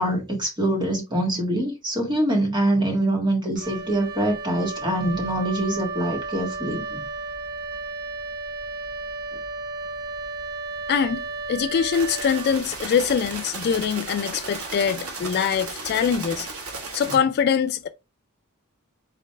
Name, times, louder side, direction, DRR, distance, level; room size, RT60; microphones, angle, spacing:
voice 1, 0.0-7.1 17.1-17.2, right 1 dB, 20° right, 1.6 m, -24 dB
Wind instrument woodwind instrument, 3.5-13.0, right 3 dB, 50° right, 0.7 m, -33 dB
voice 2, 10.9-16.5 16.9-17.9, left 7 dB, 50° left, 0.3 m, -23 dB
sound 1, 11.9-17.2, right 3 dB, 70° right, 1.5 m, -35 dB
4.0 x 3.3 x 3.2 m
head